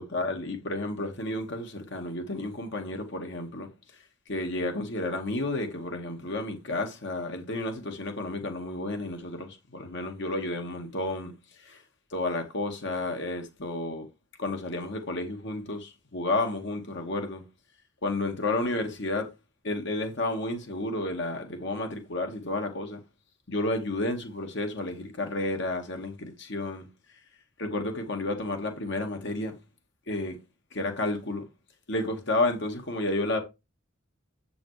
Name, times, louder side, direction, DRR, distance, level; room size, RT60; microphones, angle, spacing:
voice 1, 0.0-3.7 4.3-11.8 12.1-14.1 14.4-17.4 18.0-19.3 19.6-23.0 23.5-26.9 27.6-29.5 30.1-30.4 30.7-31.5 31.9-33.4, left 2 dB, 60° left, 1.9 m, -31 dB
8.4 x 7.2 x 3.3 m
head